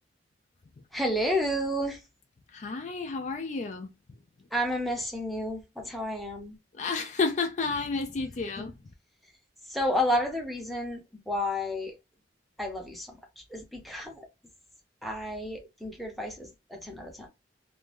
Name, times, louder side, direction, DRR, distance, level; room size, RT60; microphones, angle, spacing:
voice 1, 0.9-2.0 4.5-6.6 9.7-11.0 11.3-11.9 12.6-13.1 13.5-14.3 15.0-17.3, left 1 dB, ahead, 0.6 m, -31 dB
voice 2, 2.5-3.9 6.7-8.7, left 4 dB, 40° left, 0.4 m, -31 dB
2.5 x 2.2 x 3.2 m
head